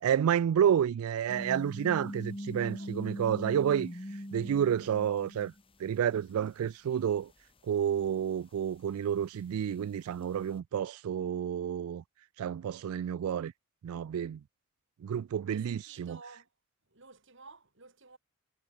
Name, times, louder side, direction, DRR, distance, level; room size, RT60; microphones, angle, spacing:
voice 1, 0.0-3.9 4.3-5.5 5.8-7.3 7.7-12.0 12.4-13.5 13.8-14.4 15.0-16.2, right 9 dB, 85° right, 0.3 m, -30 dB
sound 1, 1.3-5.6 5.9-6.0 8.6-8.7, equal, 25° left, 2.4 m, -41 dB
voice 2, 15.5-16.5 16.9-18.2, right 4 dB, 60° right, 5.0 m, -53 dB
head